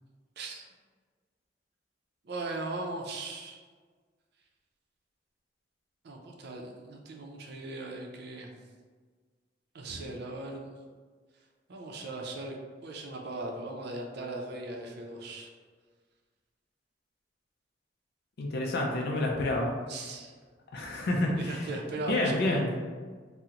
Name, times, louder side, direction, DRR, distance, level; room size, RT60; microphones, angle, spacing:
voice 1, 2.2-3.6 6.0-8.6 9.7-10.7 11.7-15.5 19.9-20.3 21.4-22.6, right 2 dB, 65° right, 1 dB, 0.5 m, -38 dB
voice 2, 18.4-19.7 20.7-21.7 22.1-22.7, left 1 dB, 60° left, -1 dB, 0.4 m, -28 dB
3.6 x 2.0 x 2.8 m, 1.5 s
head